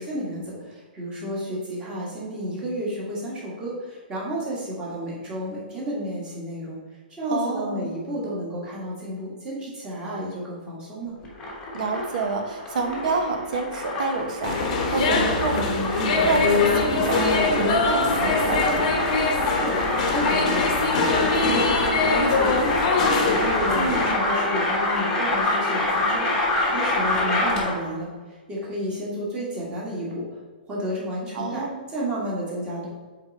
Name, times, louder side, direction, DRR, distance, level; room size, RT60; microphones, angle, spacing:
voice 1, 0.0-6.8 7.2-11.1 19.4-28.1 28.5-30.3 30.7-32.9, equal, 15° right, -5 dB, 1.7 m, -31 dB
voice 2, 7.3-7.9 11.7-18.9 23.7-24.0 31.3-31.9, right 4 dB, 50° right, 4 dB, 1.1 m, -28 dB
sound 1, 11.2-27.9, left 2 dB, 10° left, 1.2 m, -26 dB
sound 2, 14.4-24.1, left 4 dB, 45° left, 1.0 m, -23 dB
7.8 x 3.8 x 4.1 m, 1.4 s
hypercardioid pair, 160°, 5 cm